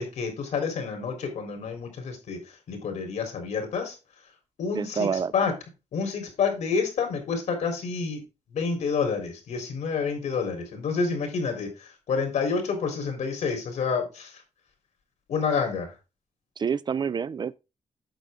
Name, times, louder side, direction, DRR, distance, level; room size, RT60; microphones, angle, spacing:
voice 1, 0.0-4.0 4.6-5.5 5.9-8.2 8.5-14.4 15.3-15.9, left 5 dB, 80° left, 3.9 m, -29 dB
voice 2, 4.7-5.3 16.6-17.5, right 6 dB, 40° right, 0.4 m, -27 dB
9.0 x 6.8 x 3.7 m
wide cardioid pair, 130°, 12 cm